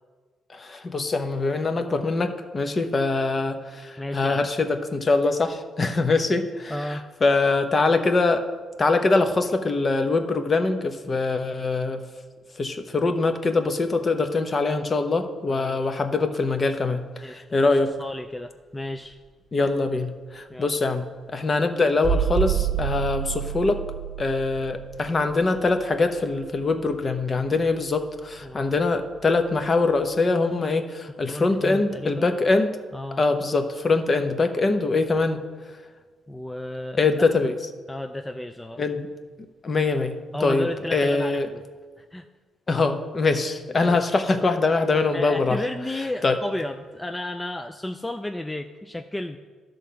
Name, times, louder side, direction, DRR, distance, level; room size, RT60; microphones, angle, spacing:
voice 1, 0.5-8.4 8.8-12.0 12.6-17.9 19.5-21.1 21.3-23.8 24.2-32.8 33.2-35.4 37.0-37.6 38.8-39.1 39.6-41.5 42.7-45.6 46.2-46.4, left 3 dB, 35° left, 8 dB, 0.8 m, -23 dB
voice 2, 4.0-4.5 6.7-7.1 11.0-11.2 15.5-16.0 17.2-17.4 17.7-19.2 19.6-19.7 20.5-20.8 28.4-28.7 31.3-32.3 32.9-33.2 36.3-37.0 37.9-38.8 40.3-41.6 42.0-42.3 43.8-44.0 45.1-49.4, left 1 dB, 10° left, 7 dB, 0.4 m, -33 dB
sound 1, 22.0-26.6 28.4-28.5, right 9 dB, 60° right, 0.6 m, -28 dB
11.0 x 3.8 x 6.8 m, 1.4 s
cardioid pair, 90°, 0 cm